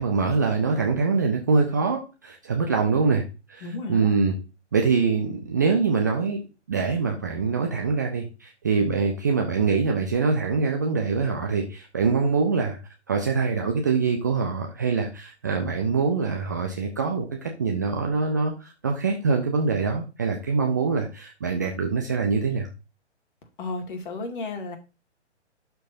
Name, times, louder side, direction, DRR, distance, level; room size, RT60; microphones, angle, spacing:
voice 1, 0.0-4.4 4.7-6.4 6.7-12.8 13.1-22.7, right 4 dB, 15° right, 1 dB, 0.5 m, -24 dB
voice 2, 3.6-4.1 23.6-24.8, left 2 dB, 45° left, 4 dB, 2.2 m, -33 dB
11.5 x 4.5 x 2.6 m, 0.30 s
figure-of-eight pair, 135°, 36 cm